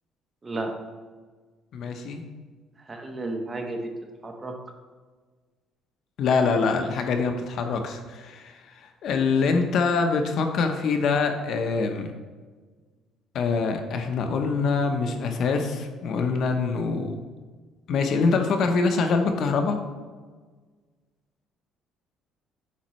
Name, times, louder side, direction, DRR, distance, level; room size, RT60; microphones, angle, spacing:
voice 1, 0.4-0.7 2.8-3.9 4.2-4.5, right 2 dB, 20° right, 3 dB, 0.9 m, -32 dB
voice 2, 1.7-2.2 6.2-8.5 9.0-12.1 13.3-17.2 17.9-19.8, left 4 dB, 55° left, 5 dB, 0.7 m, -24 dB
8.3 x 5.3 x 3.1 m, 1.4 s
cardioid pair, 135°, 0 cm